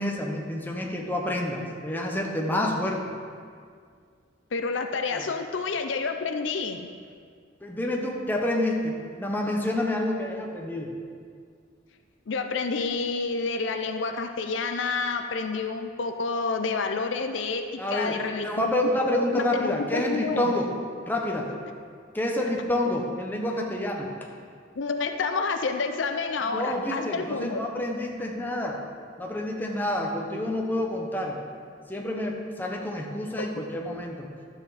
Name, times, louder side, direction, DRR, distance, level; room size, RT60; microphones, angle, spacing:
voice 1, 0.0-3.1 5.1-5.2 7.6-10.9 17.8-20.7 21.1-21.5 22.1-24.3 26.5-28.8 29.2-31.4 31.9-34.3, left 1 dB, 10° left, -1 dB, 1.0 m, -28 dB
voice 2, 4.5-6.9 12.3-18.9 19.1-20.5 24.8-27.7 33.4-33.5, left 4 dB, 70° left, 6 dB, 0.6 m, -29 dB
12.0 x 7.0 x 4.1 m, 2.1 s
head